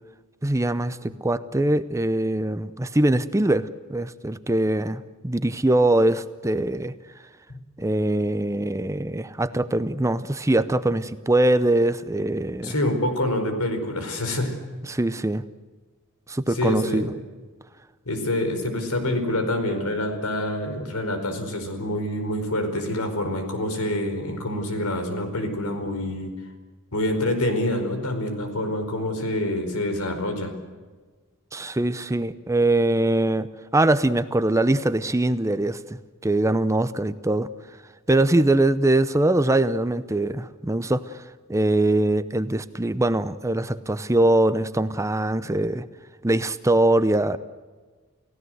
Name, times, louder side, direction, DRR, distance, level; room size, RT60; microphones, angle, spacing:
voice 1, 0.4-6.9 7.8-12.7 14.9-15.4 16.3-17.1 31.5-35.8 36.2-37.5 38.1-41.2 41.5-45.9 46.2-47.4, right 1 dB, 15° right, 13 dB, 0.7 m, -22 dB
voice 2, 12.6-14.6 16.5-17.1 18.0-26.3 26.9-30.5, left 1 dB, 85° left, 7 dB, 4.8 m, -26 dB
29.0 x 16.5 x 7.9 m, 1.4 s
head